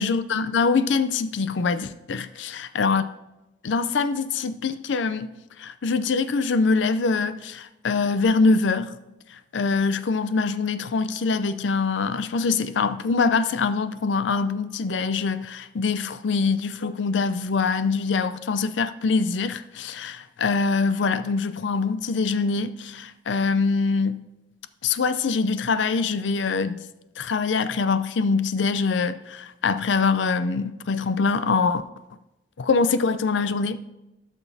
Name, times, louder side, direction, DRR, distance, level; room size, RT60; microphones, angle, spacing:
voice 1, 0.0-3.0 3.6-5.3 5.6-9.0 9.3-24.2 24.8-26.9 27.2-31.8 32.6-33.8, left 4 dB, 85° left, 0.5 m, -24 dB
16.0 x 6.0 x 2.7 m
head